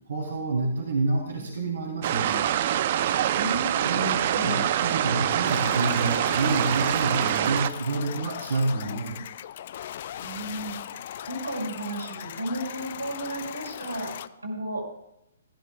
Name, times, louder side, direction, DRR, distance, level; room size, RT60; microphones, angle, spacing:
voice 1, 0.1-2.4 3.8-9.2, right 3 dB, 70° right, -5 dB, 3.8 m, -28 dB
sound 1, 2.0-7.7, right 11 dB, 45° right, 0.6 m, -25 dB
voice 2, 3.3-3.9 10.2-14.9, right 1 dB, 90° right, -1 dB, 5.8 m, -34 dB
sound 2, 5.4-14.3, left 11 dB, 50° left, 0.4 m, -39 dB
15.5 x 15.5 x 2.4 m, 0.83 s
figure-of-eight pair, 130°, 0 cm